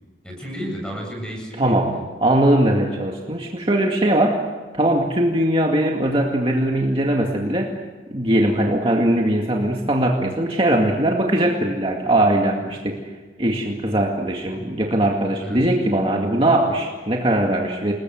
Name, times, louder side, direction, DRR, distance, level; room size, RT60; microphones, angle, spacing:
voice 1, 0.2-2.1 15.4-15.6 16.2-16.3, equal, 5° left, 0 dB, 7.8 m, -32 dB
voice 2, 1.6-1.9 2.2-4.4 4.7-7.7 8.1-13.0 13.4-17.9, right 1 dB, 30° right, 0 dB, 2.2 m, -20 dB
29.0 x 20.5 x 8.0 m, 1.3 s
head